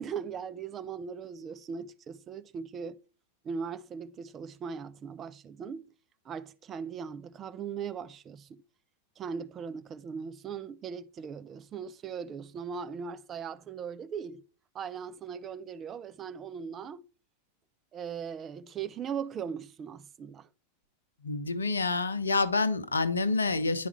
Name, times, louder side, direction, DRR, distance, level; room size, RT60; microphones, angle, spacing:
voice 1, 0.0-3.0 3.4-5.9 6.2-8.6 9.2-14.4 14.7-17.0 17.9-20.5, right 6 dB, 25° right, 0.5 m, -39 dB
voice 2, 21.2-23.9, left 3 dB, 75° left, 0.7 m, -28 dB
10.0 x 4.8 x 3.2 m
figure-of-eight pair, 90°, 0 cm